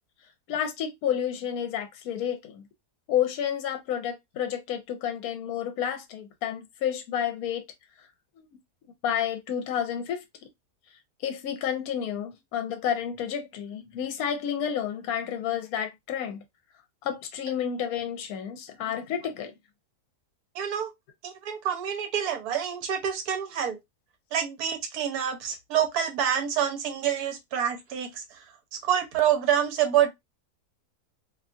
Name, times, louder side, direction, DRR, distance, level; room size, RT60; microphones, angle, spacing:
voice 1, 0.5-2.7 3.1-7.6 8.4-8.5 9.0-10.2 11.2-16.4 17.0-19.5, left 9 dB, 70° left, 1.0 m, -30 dB
voice 2, 20.5-20.9 21.2-23.8 24.3-28.4 28.8-30.1, right 9 dB, 75° right, 1.2 m, -27 dB
2.8 x 2.3 x 2.4 m
omnidirectional pair, 1.7 m